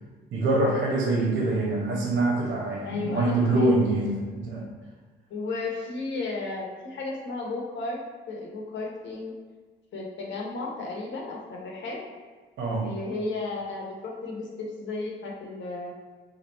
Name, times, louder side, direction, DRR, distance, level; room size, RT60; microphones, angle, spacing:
voice 1, 0.3-4.6 12.6-12.9, right 2 dB, 75° right, -2 dB, 1.1 m, -24 dB
voice 2, 2.8-3.8 5.3-8.0 8.3-9.3 9.9-12.0 12.8-15.9, left 3 dB, 65° left, -2 dB, 0.9 m, -34 dB
3.3 x 2.4 x 4.1 m, 1.4 s
cardioid pair, 90°, 20 cm